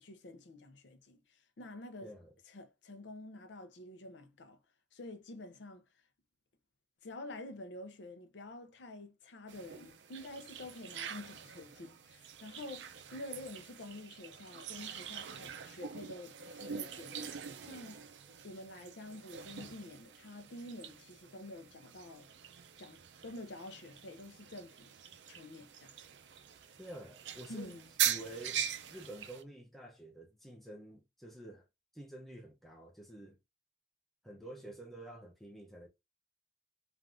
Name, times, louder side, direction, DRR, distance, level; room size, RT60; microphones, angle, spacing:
voice 1, 0.0-2.1 2.4-4.6 4.9-5.8 7.0-17.3 17.6-18.0 18.4-22.3 22.8-24.9 25.3-25.9 27.5-27.9, left 2 dB, 85° left, 0.6 m, -48 dB
sound 1, 9.5-29.4, right 9 dB, 85° right, 0.4 m, -43 dB
voice 2, 26.8-27.8 28.1-28.6 28.9-31.7 31.9-33.4 34.2-35.9, right 1 dB, ahead, 0.6 m, -49 dB
3.3 x 2.4 x 2.4 m
head